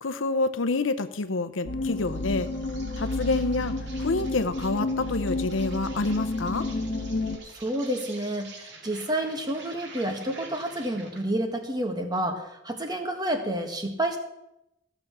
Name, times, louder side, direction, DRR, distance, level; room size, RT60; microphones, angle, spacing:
voice 1, 0.0-2.5 3.0-6.7, left 3 dB, 85° left, 11 dB, 0.7 m, -27 dB
sound 1, 1.7-7.4, left 2 dB, 50° left, 1.2 m, -31 dB
Insect, 1.9-11.3, right 3 dB, 60° right, 2.4 m, -47 dB
voice 2, 7.4-14.2, right 1 dB, 20° right, 4 dB, 1.5 m, -29 dB
14.0 x 7.0 x 6.8 m, 0.88 s
head